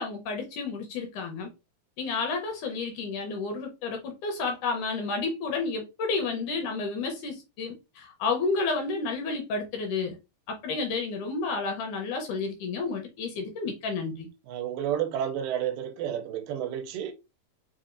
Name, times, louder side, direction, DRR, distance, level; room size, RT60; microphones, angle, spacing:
voice 1, 0.0-1.5 2.0-10.2 10.5-14.3, left 4 dB, 70° left, 2.1 m, -31 dB
voice 2, 14.5-17.1, right 10 dB, 80° right, 2.2 m, -31 dB
5.6 x 2.4 x 2.5 m
omnidirectional pair, 4.0 m